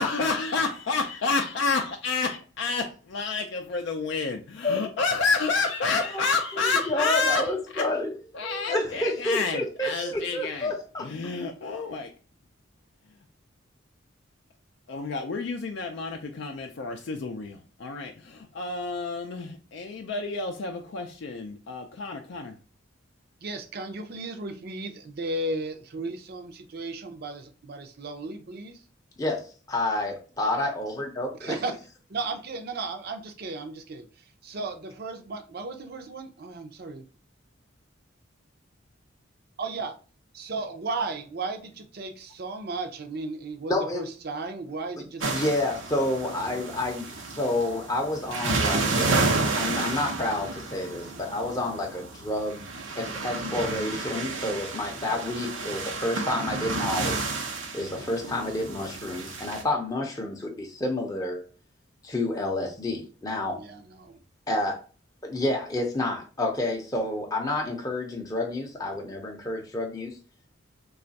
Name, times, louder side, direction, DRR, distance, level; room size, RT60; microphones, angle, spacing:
voice 1, 0.0-7.8 8.3-10.7 11.0-12.1 14.9-22.6, left 4 dB, 65° left, 0.4 m, -29 dB
voice 2, 6.6-8.1 8.4-11.1 29.2-31.6 43.7-44.1 45.2-52.6 52.9-57.2 57.7-61.4 62.0-63.6 64.5-64.8 65.2-70.1, left 1 dB, 20° left, 0.6 m, -29 dB
voice 3, 23.4-28.8 31.4-31.8 32.1-34.1 34.4-37.0 39.6-39.9 40.3-45.5 63.3-64.2, right 3 dB, 55° right, 0.5 m, -35 dB
sound 1, 45.2-59.6, right 3 dB, 90° right, 0.7 m, -31 dB
3.3 x 2.3 x 3.9 m
head